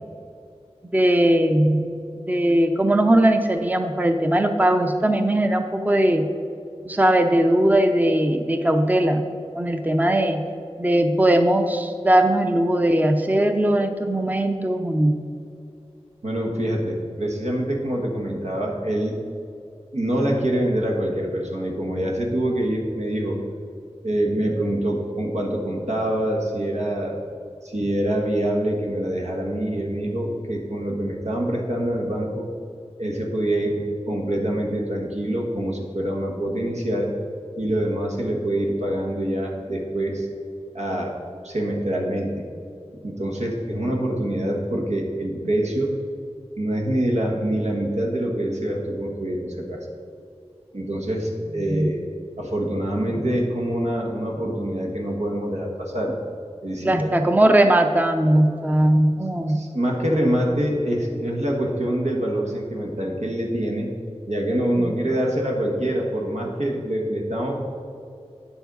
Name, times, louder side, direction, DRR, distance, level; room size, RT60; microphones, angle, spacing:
voice 1, 0.9-1.9 2.2-6.3 6.9-9.2 9.5-10.4 10.8-15.2 51.6-51.9 56.8-59.6 64.8-65.0, right 1 dB, 15° right, 6 dB, 0.5 m, -19 dB
voice 2, 16.2-19.1 19.9-23.4 24.0-27.2 27.6-32.5 33.0-37.1 37.6-40.3 40.7-41.1 41.4-42.5 43.0-45.9 46.6-49.9 50.7-52.0 52.4-56.2 56.6-57.1 59.5-63.9 64.3-67.6, right 1 dB, 85° right, -1 dB, 1.3 m, -25 dB
9.0 x 7.1 x 4.0 m, 2.5 s
wide cardioid pair, 45°, 11 cm